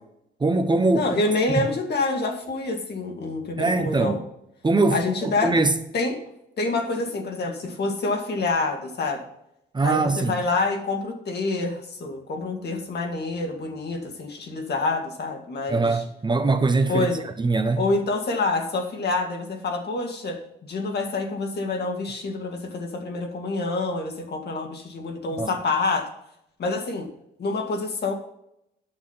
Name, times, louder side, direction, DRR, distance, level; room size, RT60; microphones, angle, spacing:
voice 1, 0.4-1.2 3.6-4.2 4.6-5.7 9.7-10.3 15.7-17.8 25.4-25.5, right 3 dB, 20° right, 0.9 m, -22 dB
voice 2, 0.9-4.2 4.9-5.5 5.9-6.2 6.6-9.2 9.8-16.0 16.9-17.2 17.8-26.1 26.6-27.1 27.4-28.1, left 3 dB, 55° left, 2.2 m, -27 dB
8.8 x 6.7 x 5.6 m
cardioid pair, 90°, 20 cm